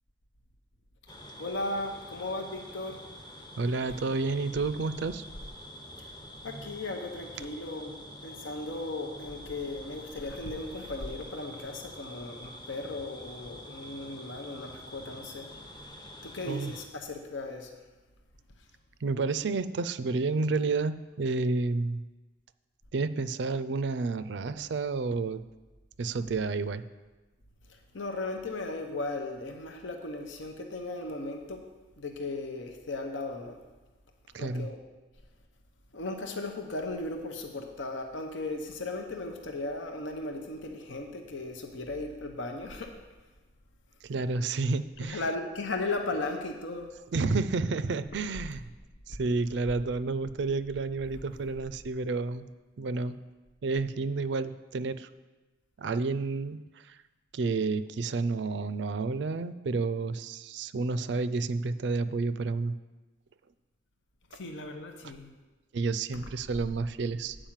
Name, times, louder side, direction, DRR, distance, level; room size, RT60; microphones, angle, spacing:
sound 1, 1.1-16.9, equal, 20° left, 0.7 m, -47 dB
voice 1, 1.4-3.0 3.8-4.0 6.0-6.1 6.4-15.5 16.2-17.9 18.6-18.7 27.6-31.7 32.0-33.6 34.4-34.8 35.9-43.3 45.0-46.9 49.1-49.5 51.1-51.2 64.3-65.3 66.5-66.7, left 2 dB, 80° left, 4 dB, 0.8 m, -37 dB
voice 2, 3.6-5.2 16.5-16.7 19.0-22.0 22.9-25.4 26.0-26.8 34.3-34.7 44.0-45.2 47.1-48.6 49.1-52.5 52.8-53.2 53.6-55.1 55.8-57.0 57.3-62.7 65.7-67.4, right 3 dB, 65° right, 13 dB, 0.4 m, -30 dB
8.9 x 5.0 x 7.3 m, 1.2 s
head